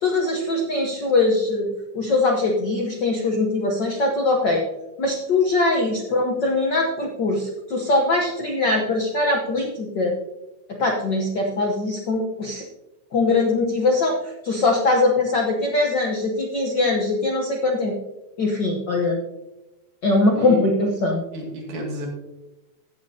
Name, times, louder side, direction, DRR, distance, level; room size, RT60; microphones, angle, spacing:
voice 1, 0.0-4.6 5.0-10.1 10.7-12.6 13.1-17.9 18.4-19.2 20.0-21.2, left 2 dB, 70° left, 1 dB, 1.0 m, -22 dB
voice 2, 21.3-22.1, equal, 85° right, 0 dB, 3.7 m, -31 dB
15.0 x 9.5 x 2.8 m, 1.0 s
omnidirectional pair, 3.4 m